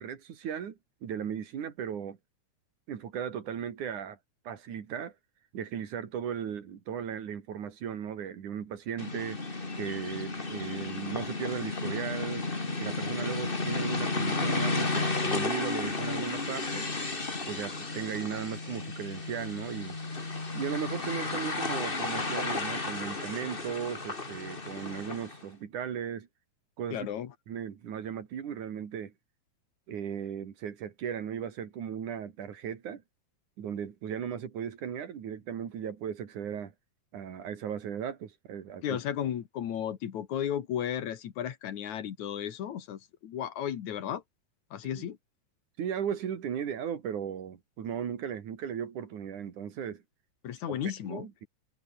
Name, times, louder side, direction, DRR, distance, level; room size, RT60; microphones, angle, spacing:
voice 1, 0.0-2.2 2.9-4.2 4.5-5.1 5.5-9.4 9.8-12.5 12.8-16.9 17.5-20.0 20.5-26.3 26.8-27.1 27.5-29.1 29.9-33.0 33.6-36.7 37.1-39.0 44.9-45.0 45.8-50.0 50.7-50.8 51.0-51.5, right 8 dB, 80° right, 3.9 m, -36 dB
sound 1, 9.0-25.4, left 3 dB, 20° left, 2.2 m, -33 dB
voice 2, 26.9-27.3 38.8-44.2 44.7-45.2 50.4-51.3, left 10 dB, 75° left, 3.1 m, -34 dB
omnidirectional pair, 3.4 m